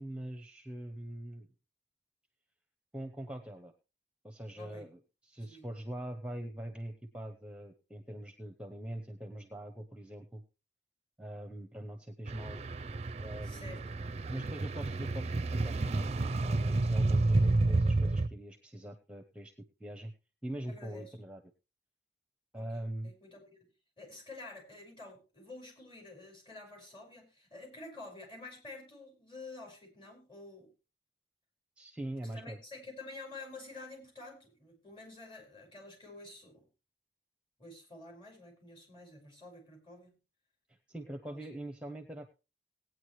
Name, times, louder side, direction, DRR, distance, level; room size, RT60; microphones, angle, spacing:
voice 1, 0.0-1.5 2.9-3.7 4.2-10.4 11.2-12.7 13.2-13.8 14.3-19.5 19.8-20.1 20.4-21.4 22.5-23.1 31.8-32.6 40.7-42.3, right 1 dB, 5° right, 7 dB, 0.9 m, -43 dB
sound 1, 12.3-18.3, right 2 dB, 35° right, 0.5 m, -30 dB
voice 2, 13.4-14.0 20.7-21.2 22.5-22.7 23.0-23.6 24.0-30.7 32.3-36.7 37.6-40.2 41.3-41.5, left 2 dB, 30° left, 2 dB, 5.5 m, -49 dB
18.0 x 9.2 x 3.1 m, 0.31 s
head